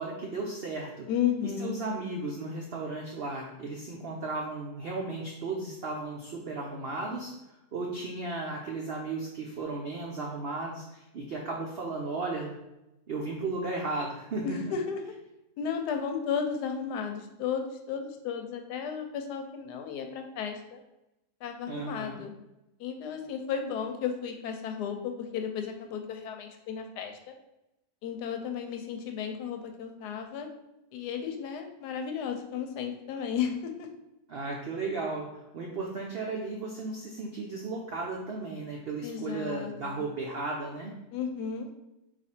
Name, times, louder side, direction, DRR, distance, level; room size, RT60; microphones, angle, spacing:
voice 1, 0.0-1.1 1.4-7.3 7.7-12.6 13.1-14.7 21.7-22.2 34.3-40.9, right 3 dB, 85° right, -1 dB, 0.5 m, -35 dB
voice 2, 1.1-1.7 14.4-15.0 15.6-20.8 21.4-22.3 22.8-27.3 28.0-30.5 30.9-33.9 39.0-40.1 41.1-41.7, left 7 dB, 80° left, 4 dB, 1.2 m, -34 dB
4.2 x 2.6 x 4.3 m, 0.92 s
omnidirectional pair, 1.8 m